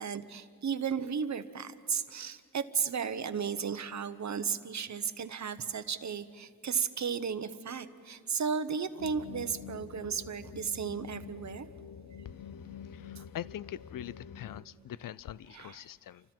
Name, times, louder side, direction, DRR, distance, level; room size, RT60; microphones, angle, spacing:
voice 1, 0.0-11.7 15.5-15.9, right 6 dB, 55° right, 11 dB, 1.0 m, -34 dB
sound 1, 9.0-14.6, left 8 dB, 85° left, 1.1 m, -47 dB
voice 2, 13.3-16.2, left 11 dB, 70° left, 20 dB, 0.5 m, -42 dB
29.5 x 25.5 x 4.5 m, 2.2 s
wide cardioid pair, 130°, 34 cm